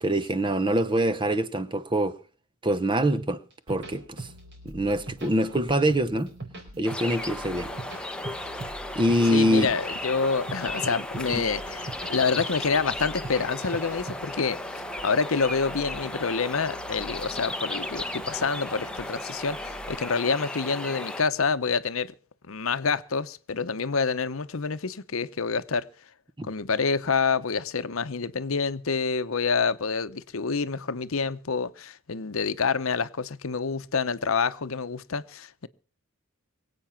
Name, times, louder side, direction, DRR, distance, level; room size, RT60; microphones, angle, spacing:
voice 1, 0.0-2.2 2.6-3.4 3.7-4.3 4.6-6.3 6.8-7.7 8.9-9.7 26.4-26.5, right 1 dB, 25° right, 0.9 m, -24 dB
sound 1, 3.2-4.5 4.9-6.0 6.3-7.2 7.6-9.4 9.6-10.0 10.3-12.1 12.4-12.7 13.1-14.1, right 3 dB, 55° right, 4.7 m, -39 dB
sound 2, 3.7-20.0, equal, 80° right, 1.4 m, -49 dB
sound 3, 6.8-21.2, left 1 dB, 5° left, 0.9 m, -35 dB
voice 2, 9.3-14.6 15.0-22.1 22.5-25.9 26.4-35.7, left 5 dB, 70° left, 0.8 m, -27 dB
23.0 x 8.5 x 5.8 m
head